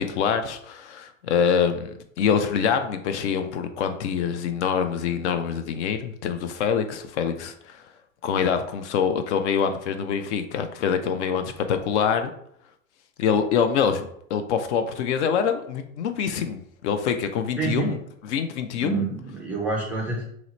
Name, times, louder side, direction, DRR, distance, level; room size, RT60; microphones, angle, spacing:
voice 1, 0.0-7.8 8.2-12.3 13.2-18.0 18.2-19.1, left 7 dB, 60° left, 8 dB, 0.5 m, -25 dB
voice 2, 17.6-17.9 18.8-20.2, right 4 dB, 5° right, -4 dB, 0.3 m, -27 dB
2.9 x 2.0 x 3.9 m, 0.69 s
hypercardioid pair, 110°, 40 cm